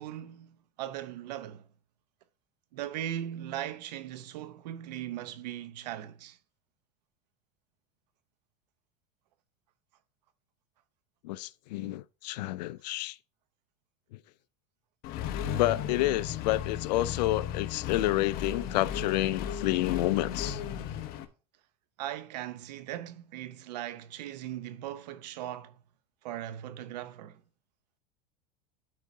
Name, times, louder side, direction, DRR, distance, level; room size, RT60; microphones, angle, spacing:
voice 1, 0.0-1.7 2.7-6.4 18.0-18.1 22.0-25.8 26.2-27.4, right 12 dB, 85° right, 0.9 m, -39 dB
voice 2, 11.2-13.2 15.5-20.6, left 16 dB, 85° left, 0.5 m, -29 dB
Accelerating revving vroom, 15.0-21.2, left 9 dB, 50° left, 1.0 m, -35 dB
12.0 x 4.8 x 2.7 m
supercardioid pair, 130°, 21 cm